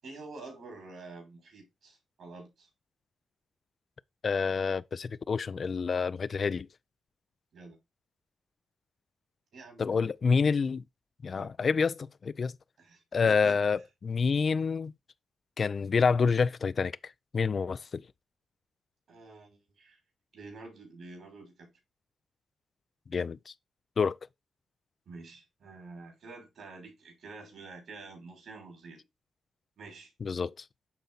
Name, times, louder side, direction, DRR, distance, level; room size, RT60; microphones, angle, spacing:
voice 1, 0.0-2.7 7.5-7.8 9.5-10.0 11.3-11.5 12.8-13.6 19.1-20.0 20.3-21.7 25.1-29.0 29.8-30.1, right 3 dB, 70° right, 6.0 m, -48 dB
voice 2, 4.2-6.7 9.8-10.8 11.2-12.6 13.1-14.9 15.6-17.0 17.3-18.0 23.1-23.5 24.0-24.2 30.2-30.6, left 5 dB, 55° left, 0.5 m, -28 dB
11.5 x 3.9 x 4.0 m
supercardioid pair, 45°, 0 cm